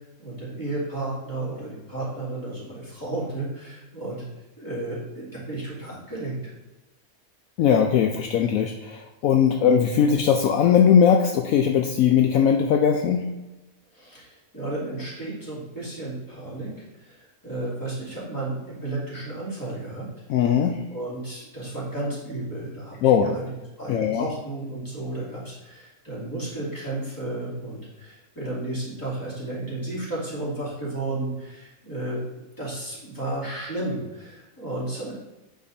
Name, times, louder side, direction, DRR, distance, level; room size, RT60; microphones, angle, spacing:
voice 1, 0.0-4.2 4.6-6.5 9.5-9.7 13.9-20.1 20.3-20.6 20.9-23.5 23.8-32.2 32.6-35.1, right 2 dB, 15° left, -8 dB, 2.7 m, -33 dB
voice 2, 7.6-13.2 20.3-20.8 23.0-23.4 23.9-24.3, left 7 dB, 75° left, 3 dB, 1.0 m, -19 dB
8.6 x 6.1 x 2.7 m, 1.0 s
omnidirectional pair, 1.5 m